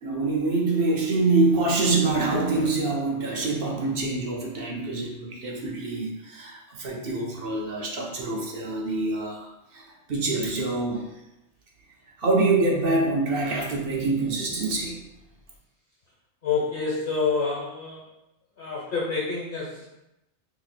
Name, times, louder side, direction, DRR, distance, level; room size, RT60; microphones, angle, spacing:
voice 1, 0.0-11.1 12.2-15.0, right 3 dB, 60° right, -2 dB, 0.8 m, -25 dB
voice 2, 16.4-18.0 18.6-19.9, left 4 dB, 60° left, -6 dB, 1.1 m, -27 dB
2.8 x 2.5 x 4.0 m, 0.89 s
omnidirectional pair, 1.2 m